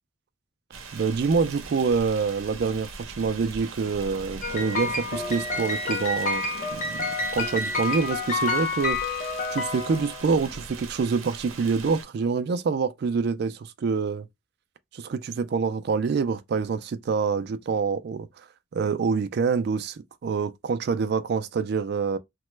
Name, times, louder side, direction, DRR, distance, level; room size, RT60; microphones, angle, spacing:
sound 1, 0.7-12.0, right 4 dB, 85° right, 0.7 m, -41 dB
voice 1, 0.9-2.9 3.2-6.5 6.7-9.0 9.5-14.3 14.9-18.3 18.7-22.2, right 5 dB, 55° right, 0.3 m, -26 dB
sound 2, 4.4-10.4, left 3 dB, 40° left, 0.6 m, -29 dB
2.9 x 2.2 x 3.1 m
head